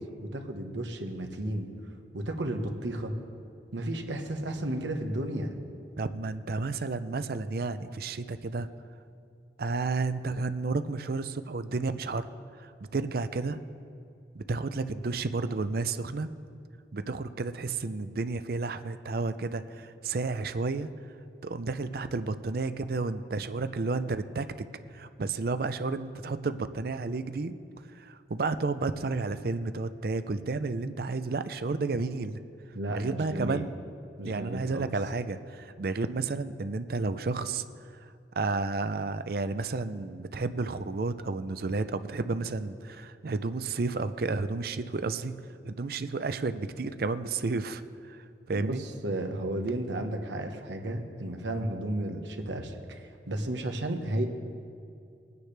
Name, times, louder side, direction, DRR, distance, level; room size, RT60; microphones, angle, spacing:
voice 1, 0.2-1.7 2.1-3.1 3.7-5.5 32.7-33.6 34.2-34.9 48.5-54.2, right 1 dB, 90° right, 4 dB, 1.2 m, -33 dB
voice 2, 6.0-8.7 9.6-12.3 12.6-13.6 14.4-16.3 16.9-20.9 21.4-24.5 24.9-27.5 27.9-32.4 32.9-33.7 34.2-37.6 38.4-45.3 45.6-47.8 48.1-48.2 48.5-48.8, right 3 dB, 55° right, 11 dB, 0.5 m, -31 dB
21.0 x 9.4 x 3.3 m, 2.5 s
head